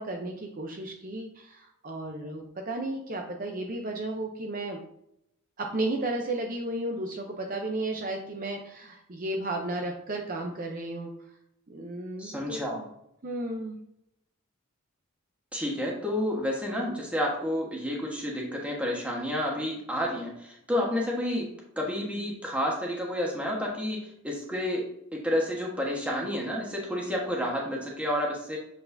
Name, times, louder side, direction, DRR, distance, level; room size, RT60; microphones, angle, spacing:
voice 1, 0.0-4.8 5.6-11.1 11.7-12.9 13.2-13.8, right 2 dB, 40° right, 2 dB, 0.6 m, -33 dB
voice 2, 12.2-12.8 15.5-21.5 21.8-24.0 24.2-24.8 25.1-28.6, left 1 dB, 5° right, -2 dB, 1.3 m, -30 dB
7.6 x 4.6 x 2.7 m, 0.75 s
head